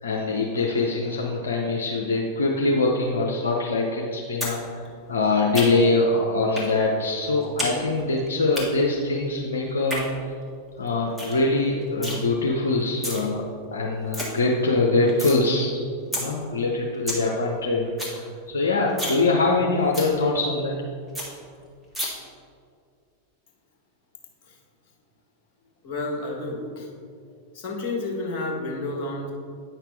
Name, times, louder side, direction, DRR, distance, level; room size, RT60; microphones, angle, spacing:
voice 1, 0.0-4.8 5.1-10.0 10.8-13.4 13.7-15.8 16.1-20.7, left 3 dB, 70° left, -1 dB, 0.7 m, -23 dB
sound 1, 4.4-4.6 4.9-6.0 6.6-6.7 7.0-7.7 8.0-8.6 9.7-10.0 10.5-10.6 10.9-11.0 11.2-11.4 11.7-12.2 12.8-13.2 13.6-13.7 13.9-14.3 14.6-15.4 15.7-15.8 16.1-16.2 16.6-16.7 16.9-17.2 17.6-17.7 17.9-18.2 18.5-18.6 18.9-19.2 19.5-19.6 19.9-20.1 20.5-20.6 20.8-20.9 21.1-21.3 21.9-22.1, equal, 5° right, 1.7 m, -30 dB
voice 2, 25.8-26.9 27.5-29.3, left 2 dB, 45° left, 0 dB, 1.4 m, -30 dB
8.9 x 5.8 x 3.4 m, 2.3 s
figure-of-eight pair, 90°, 0 cm